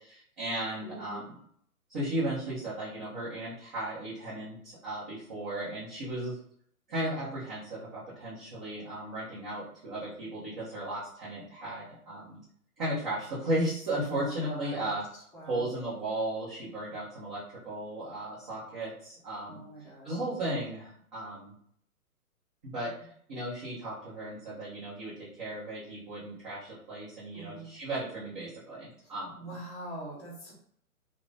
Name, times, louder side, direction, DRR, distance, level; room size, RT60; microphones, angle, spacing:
voice 1, 0.0-1.4 1.9-6.4 6.9-12.4 12.8-15.0 15.5-21.5 22.6-29.5, right 1 dB, 25° right, -10 dB, 1.3 m, -35 dB
voice 2, 0.8-1.2 14.1-15.0 15.3-15.7 19.5-20.2 27.3-27.7 29.4-30.5, right 1 dB, 5° left, -11 dB, 0.8 m, -43 dB
2.9 x 2.7 x 3.4 m, 0.64 s
hypercardioid pair, 150°, 46 cm